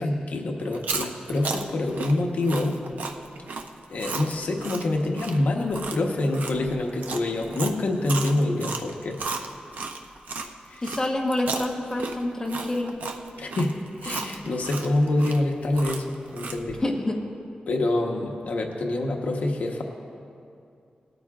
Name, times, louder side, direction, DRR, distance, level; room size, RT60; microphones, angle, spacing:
voice 1, 0.0-2.8 3.9-9.2 10.7-10.8 13.4-13.7 14.0-16.8 17.7-19.8, left 2 dB, 65° left, 2 dB, 1.1 m, -26 dB
Chewing mastication, 0.7-10.5 10.8-16.8, right 4 dB, 75° right, 0.7 m, -34 dB
voice 2, 10.8-13.0 16.8-17.2, left 1 dB, 20° left, 0 dB, 1.1 m, -27 dB
19.0 x 13.0 x 2.4 m, 2.5 s
wide cardioid pair, 145°, 3 cm